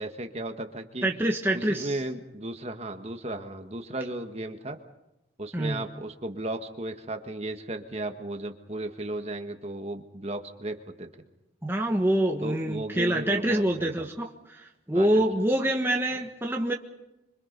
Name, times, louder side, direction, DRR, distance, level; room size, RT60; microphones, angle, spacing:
voice 1, 0.0-1.1 1.5-4.8 5.4-11.1 12.4-14.1 14.9-15.2, right 1 dB, 35° right, 6 dB, 1.6 m, -35 dB
voice 2, 1.0-2.0 5.5-5.8 11.6-16.7, right 1 dB, 10° right, 1 dB, 1.4 m, -26 dB
27.0 x 24.5 x 5.3 m, 0.92 s
head